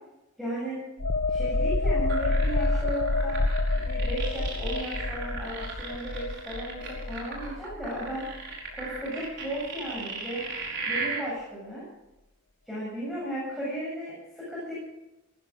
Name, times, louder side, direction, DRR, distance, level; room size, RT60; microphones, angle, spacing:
voice 1, 0.4-0.8 1.3-3.4 3.8-8.4 8.7-10.4 10.9-11.8 12.7-14.7, right 1 dB, ahead, -8 dB, 7.8 m, -35 dB
sound 1, 1.0-8.4 8.8-9.0, left 2 dB, 80° left, 1.1 m, -28 dB
sound 2, 2.1-11.2, right 4 dB, 55° right, 5.0 m, -36 dB
19.0 x 14.5 x 5.2 m, 0.95 s
head